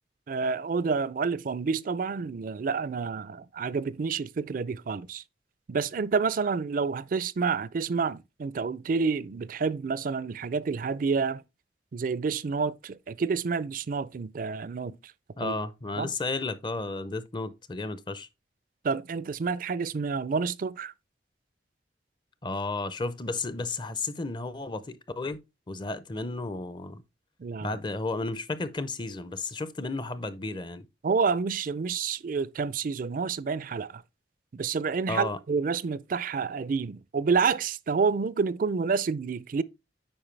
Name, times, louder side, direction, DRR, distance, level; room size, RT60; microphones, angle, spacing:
voice 1, 0.3-5.2 5.7-11.4 11.9-14.9 15.4-15.6 16.0-16.1 18.8-20.9 27.4-27.8 31.0-34.0 34.5-39.6, right 5 dB, 50° right, 0.4 m, -29 dB
voice 2, 15.4-18.3 22.4-25.4 25.7-27.0 27.6-30.9 35.1-35.4, left 3 dB, 25° left, 0.6 m, -33 dB
8.8 x 5.1 x 3.2 m
head